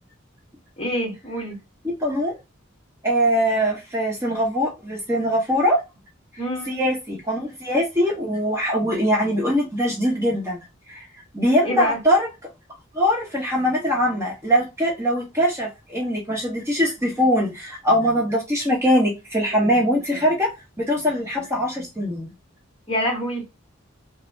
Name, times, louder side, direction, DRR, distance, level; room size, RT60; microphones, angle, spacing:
voice 1, 0.8-1.6 6.4-6.8 11.6-12.0 22.9-23.5, equal, 30° left, 1.2 m, -26 dB
voice 2, 2.0-2.4 3.0-5.8 6.6-10.6 10.9-11.0 11.3-12.3 12.9-20.5 20.8-22.3, equal, 15° right, 0.9 m, -22 dB
3.2 x 2.0 x 2.4 m
head